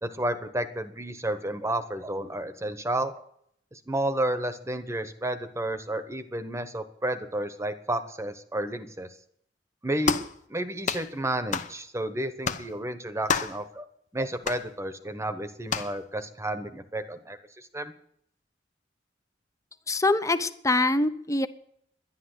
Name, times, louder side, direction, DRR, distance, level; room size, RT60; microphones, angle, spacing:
voice 1, 0.0-3.1 3.7-9.1 9.8-10.2 10.5-13.8 14.1-17.4 17.7-17.9, right 1 dB, 15° right, 11 dB, 1.1 m, -31 dB
sound 1, 10.0-10.3 10.8-11.1 11.5-11.7 12.4-12.7 13.3-13.6 14.4-14.6 15.7-15.9, left 5 dB, 45° left, 0.9 m, -28 dB
voice 2, 19.9-21.5, left 2 dB, 20° left, 12 dB, 0.8 m, -24 dB
11.5 x 11.0 x 8.0 m, 0.69 s
head